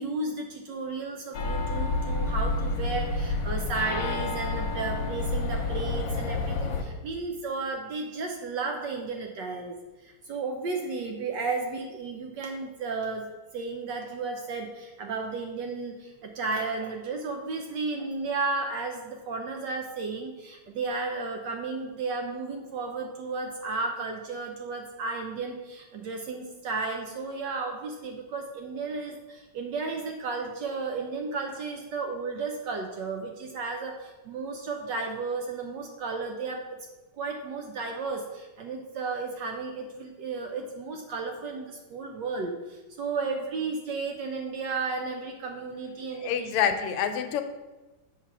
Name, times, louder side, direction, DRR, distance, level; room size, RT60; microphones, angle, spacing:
voice 1, 0.0-13.3 13.5-36.6 37.2-46.5, right 4 dB, 70° right, 2 dB, 1.1 m, -33 dB
sound 1, 1.3-6.8, left 2 dB, 65° left, 1.4 m, -29 dB
voice 2, 46.2-47.4, left 8 dB, 85° left, 8 dB, 1.6 m, -27 dB
7.3 x 3.4 x 5.8 m, 1.1 s
omnidirectional pair, 2.4 m